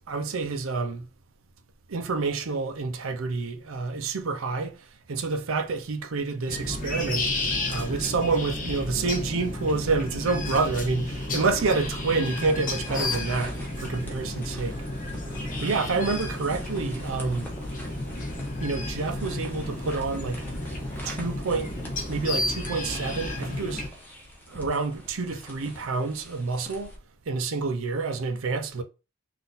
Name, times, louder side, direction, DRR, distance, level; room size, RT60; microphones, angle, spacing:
voice 1, 0.1-1.1 1.9-4.8 5.1-7.3 7.7-14.8 15.6-17.5 18.6-20.5 21.0-21.7 22.1-23.8 24.5-26.9 27.3-28.8, right 4 dB, 65° right, 0.6 m, -28 dB
sound 1, 6.5-23.9, left 2 dB, 40° left, 1.1 m, -32 dB
sound 2, 11.5-27.0, equal, 10° left, 1.0 m, -44 dB
3.9 x 2.6 x 3.9 m
head